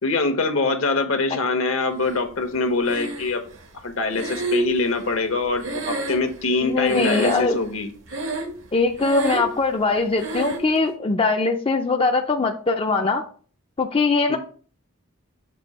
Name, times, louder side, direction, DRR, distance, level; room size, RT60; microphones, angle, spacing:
voice 1, 0.0-3.4 3.8-7.9 14.3-14.4, left 3 dB, 70° left, 7 dB, 1.0 m, -24 dB
Breathing, 2.9-3.6 4.1-6.6 6.9-7.7 8.1-8.7 8.9-9.6 10.2-10.7, right 2 dB, 65° right, 0.9 m, -28 dB
voice 2, 6.6-7.6 8.7-13.2 13.8-14.4, left 3 dB, 25° left, 4 dB, 0.4 m, -21 dB
6.8 x 2.7 x 5.3 m, 0.43 s
head